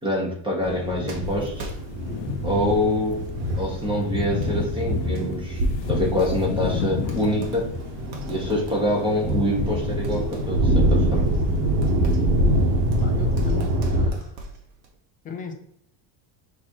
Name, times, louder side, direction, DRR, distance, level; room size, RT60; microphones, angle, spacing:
voice 1, 0.0-1.7 2.4-3.3 3.6-7.7 8.3-11.3, left 1 dB, 10° right, -3 dB, 1.3 m, -25 dB
sound 1, 0.6-14.1, right 1 dB, 85° right, 1.2 m, -25 dB
sound 2, 1.1-2.3 3.0-3.7 4.3-4.5 5.2-5.3 5.8-6.7 7.0-9.6 10.0-15.0, right 2 dB, 50° right, 1.2 m, -41 dB
sound 3, 1.3-1.4 1.7-13.8, left 8 dB, 85° left, 0.6 m, -34 dB
voice 2, 13.0-14.4 15.2-15.5, left 6 dB, 20° left, 4 dB, 0.3 m, -37 dB
5.9 x 3.0 x 3.0 m, 0.73 s
cardioid pair, 150°, 49 cm